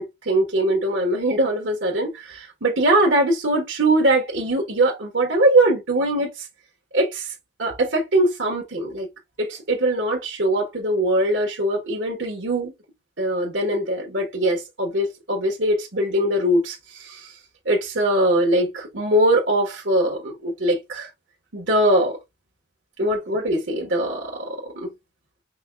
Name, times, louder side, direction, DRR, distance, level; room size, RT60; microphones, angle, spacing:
voice 1, 0.0-6.4 6.9-7.3 7.6-9.1 9.4-12.7 13.2-17.3 17.6-21.1 21.5-22.2 23.0-24.9, right 1 dB, 90° right, 1.4 m, -22 dB
5.4 x 2.3 x 3.3 m
head